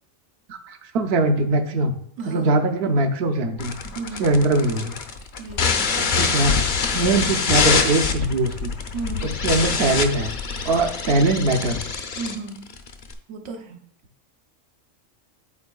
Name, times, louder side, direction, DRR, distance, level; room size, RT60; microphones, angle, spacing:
voice 1, 0.5-3.8 4.2-4.9 6.0-6.6 6.9-8.7 9.2-10.3 10.6-11.8, right 2 dB, 65° right, 5 dB, 0.9 m, -22 dB
voice 2, 2.2-2.6 3.8-4.3 5.4-5.9 8.9-9.3 12.2-12.6 13.3-13.8, right 4 dB, 85° right, 3 dB, 1.2 m, -34 dB
sound 1, 3.6-13.1, left 5 dB, 50° left, 0.7 m, -25 dB
sound 2, 5.5-11.9, left 5 dB, 80° left, 0.9 m, -32 dB
11.0 x 4.4 x 2.3 m, 0.67 s
omnidirectional pair, 1.2 m